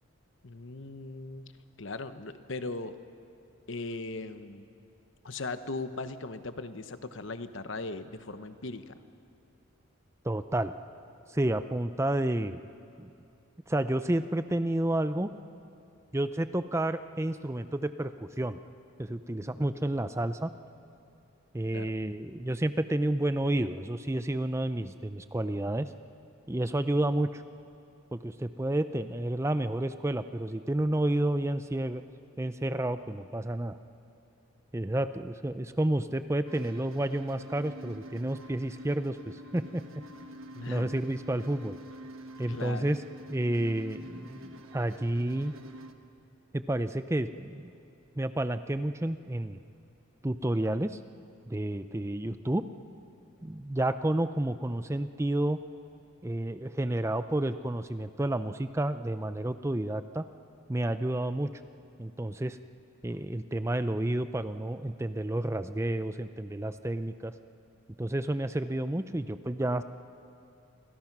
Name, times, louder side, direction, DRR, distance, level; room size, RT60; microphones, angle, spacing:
voice 1, 0.4-1.4 1.8-3.0 3.7-4.6 5.2-8.9 21.7-21.9 40.5-40.9 42.5-42.9, left 3 dB, 65° left, 10 dB, 1.0 m, -38 dB
voice 2, 10.2-10.7 11.3-12.6 13.0-13.1 13.7-15.3 16.1-18.6 19.0-20.5 21.5-25.9 26.5-27.4 28.1-32.0 32.4-33.8 34.7-39.8 40.7-41.8 42.4-43.0 43.3-45.5 46.5-47.7 48.2-49.6 50.2-51.0 51.5-52.7 53.4-55.6 56.2-60.3 60.7-61.5 62.0-62.6 63.0-67.3 68.0-69.8, right 1 dB, 15° right, 11 dB, 0.5 m, -30 dB
sound 1, 36.5-45.9, equal, 75° right, 1.3 m, -47 dB
29.5 x 24.0 x 6.1 m, 2.6 s
head